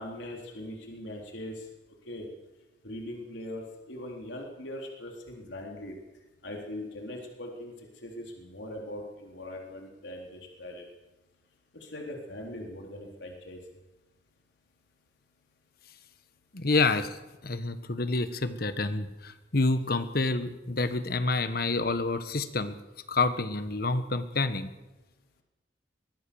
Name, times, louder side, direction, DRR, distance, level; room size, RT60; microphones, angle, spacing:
voice 1, 0.0-1.7 2.1-2.3 2.8-6.0 6.4-7.7 8.0-10.9 11.8-13.6, left 1 dB, 80° left, 0 dB, 3.9 m, -40 dB
voice 2, 16.5-17.2 17.4-22.8 23.1-24.7, left 3 dB, 55° left, 11 dB, 1.4 m, -28 dB
23.5 x 19.5 x 7.1 m, 1.1 s
head